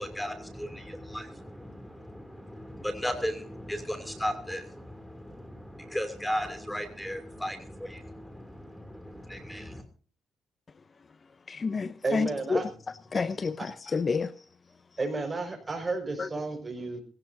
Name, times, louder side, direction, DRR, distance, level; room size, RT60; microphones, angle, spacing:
voice 1, 0.0-9.8, equal, 5° left, 2.7 m, -36 dB
voice 2, 11.5-12.6 13.1-14.4 16.2-16.3, left 4 dB, 35° left, 0.8 m, -29 dB
voice 3, 12.0-12.6 15.0-17.0, right 3 dB, 25° right, 5.7 m, -32 dB
20.5 x 16.5 x 2.7 m
cardioid pair, 90°, 0 cm